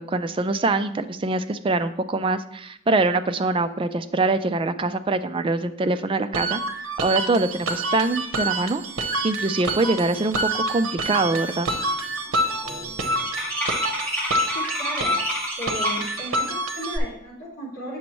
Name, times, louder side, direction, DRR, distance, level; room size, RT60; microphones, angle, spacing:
voice 1, 0.0-6.6 7.0-8.8 9.2-11.7, right 2 dB, 25° right, 10 dB, 0.3 m, -24 dB
sound 1, 6.3-17.0, right 1 dB, 75° right, 0.9 m, -27 dB
sound 2, 10.6-10.7 11.1-11.4 11.7-16.3, equal, 10° left, 2.1 m, -31 dB
voice 2, 14.5-15.2 15.6-18.0, equal, 45° left, -5 dB, 2.7 m, -35 dB
8.6 x 6.1 x 3.1 m, 0.75 s
head